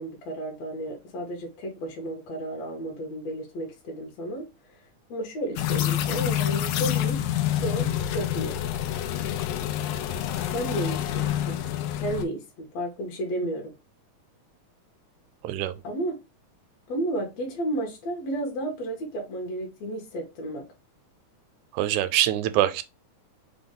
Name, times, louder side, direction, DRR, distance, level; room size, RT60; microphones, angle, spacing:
voice 1, 0.0-4.5 5.1-8.6 10.5-11.6 12.0-13.7 15.8-16.2 16.9-20.6, right 1 dB, 65° left, 1.9 m, -32 dB
sound 1, 5.6-12.2, left 11 dB, 85° left, 2.1 m, -27 dB
voice 2, 21.7-22.8, right 13 dB, 80° right, 1.8 m, -24 dB
5.2 x 2.2 x 3.7 m
omnidirectional pair, 3.6 m